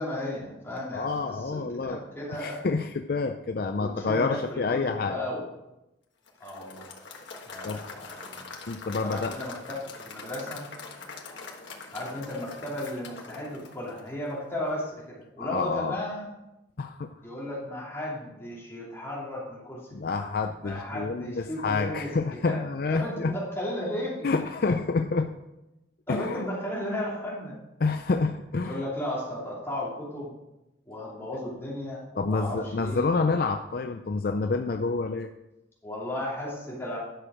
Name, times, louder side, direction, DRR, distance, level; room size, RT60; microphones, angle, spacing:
voice 1, 0.0-2.6 3.7-5.4 6.4-6.9 7.4-8.5 9.0-10.7 11.9-16.3 17.2-20.3 20.6-22.1 22.4-22.6 22.9-24.3 26.1-27.6 28.6-30.3 30.9-33.1 35.8-37.0, left 1 dB, 15° left, -6 dB, 2.7 m, -35 dB
voice 2, 0.9-2.0 2.3-5.2 7.6-7.8 8.7-9.4 15.4-16.0 16.8-17.1 19.9-23.3 24.2-25.3 26.1-26.4 27.8-28.8 32.2-35.3, left 4 dB, 55° left, 6 dB, 0.4 m, -28 dB
Applause / Crowd, 6.3-14.4, left 4 dB, 80° left, 1.4 m, -43 dB
10.5 x 6.3 x 4.9 m, 0.93 s
head